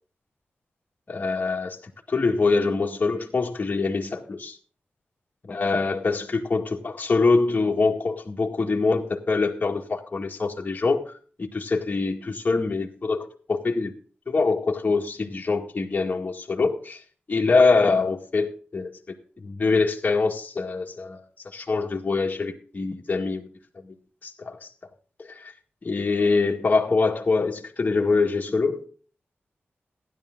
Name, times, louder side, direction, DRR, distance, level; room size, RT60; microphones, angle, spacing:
voice 1, 1.1-1.8 2.1-4.6 5.4-11.1 11.4-13.9 14.3-17.0 17.3-18.9 19.4-21.2 21.5-23.5 24.2-24.6 25.3-25.4 25.8-28.9, left 4 dB, 40° left, 2.0 m, -24 dB
15.5 x 11.0 x 3.8 m
wide cardioid pair, 110°, 4 cm